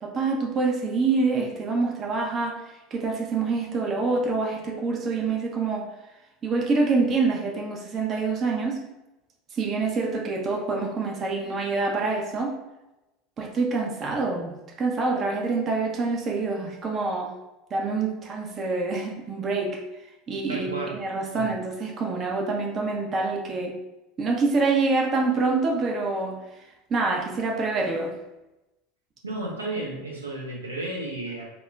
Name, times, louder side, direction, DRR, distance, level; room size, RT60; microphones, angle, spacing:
voice 1, 0.0-2.6 2.9-5.9 6.4-8.8 9.5-12.6 13.4-17.3 17.7-19.8 20.3-23.8 24.2-26.4 26.9-28.1, right 3 dB, 35° right, 0 dB, 0.4 m, -26 dB
voice 2, 20.5-21.0 21.3-21.5 29.2-31.5, right 2 dB, 85° right, -3 dB, 0.6 m, -32 dB
2.1 x 2.0 x 3.4 m, 0.98 s
figure-of-eight pair, 75°, 0 cm